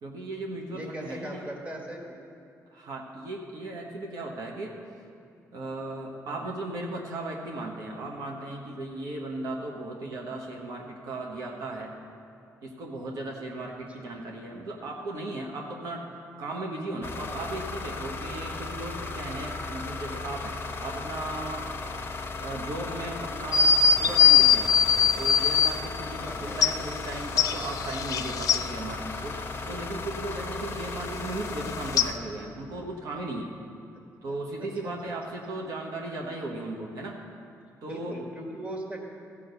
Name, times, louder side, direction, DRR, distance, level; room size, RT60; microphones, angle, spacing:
voice 1, 0.0-1.5 2.7-4.8 5.5-11.9 12.6-16.1 16.4-21.7 22.4-23.6 24.0-24.7 25.2-33.5 34.2-37.2 37.8-38.2, right 2 dB, 70° right, 0 dB, 1.3 m, -36 dB
voice 2, 0.7-2.2 14.0-14.1 26.2-26.8 30.3-31.1 34.3-34.4 34.8-34.9 37.9-39.1, right 1 dB, 20° right, 0 dB, 2.0 m, -39 dB
sound 1, 17.0-32.1, left 3 dB, 35° left, 1.0 m, -36 dB
sound 2, 23.5-25.7 26.6-26.7 27.4-28.6 32.0-32.1, left 7 dB, 70° left, 0.5 m, -20 dB
15.0 x 5.5 x 6.8 m, 2.5 s
cardioid pair, 100°, 6 cm